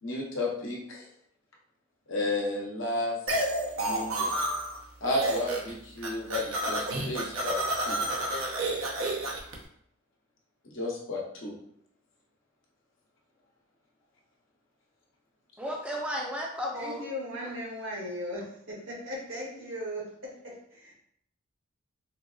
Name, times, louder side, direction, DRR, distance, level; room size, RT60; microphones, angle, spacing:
voice 1, 0.0-1.0 2.1-3.1 3.8-4.3 5.0-7.6 7.9-8.1 10.7-11.5, left 2 dB, 65° left, -2 dB, 0.8 m, -32 dB
sound 1, 3.3-4.8 5.1-5.7 6.0-9.5, right 1 dB, 90° right, 0.6 m, -30 dB
voice 2, 15.6-17.0, equal, 5° right, -1 dB, 0.4 m, -33 dB
voice 3, 16.7-20.9, equal, 65° right, -3 dB, 1.0 m, -38 dB
3.9 x 2.3 x 2.3 m, 0.69 s
head